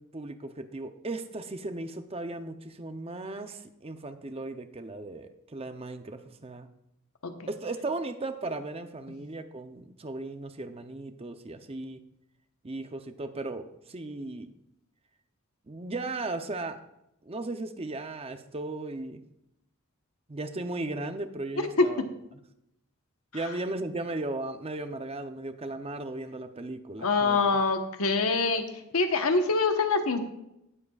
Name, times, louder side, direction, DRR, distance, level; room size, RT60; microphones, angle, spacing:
voice 1, 0.0-6.7 7.5-12.0 12.6-14.5 15.7-16.8 17.2-19.2 20.3-22.0 23.3-27.4, right 2 dB, 30° right, 8 dB, 0.6 m, -36 dB
voice 2, 27.0-28.6 28.9-30.2, left 4 dB, 85° left, 6 dB, 1.1 m, -25 dB
18.0 x 7.7 x 2.4 m, 0.82 s
head